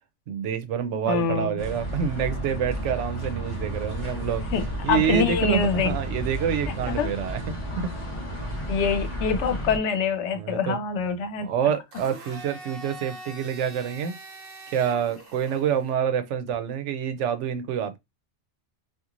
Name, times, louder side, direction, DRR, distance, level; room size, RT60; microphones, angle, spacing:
voice 1, 0.3-4.5 4.8-7.9 10.3-10.8 11.4-14.2 14.7-18.0, right 8 dB, 90° right, 0.9 m, -27 dB
voice 2, 1.1-1.5 4.5-5.9 6.9-7.1 8.7-11.5, left 5 dB, 80° left, 0.9 m, -25 dB
sound 1, 1.6-9.8, right 1 dB, 30° left, 0.8 m, -32 dB
Domestic sounds home sounds, 11.9-15.9, right 2 dB, 55° right, 1.0 m, -43 dB
2.9 x 2.4 x 2.4 m
omnidirectional pair, 1.2 m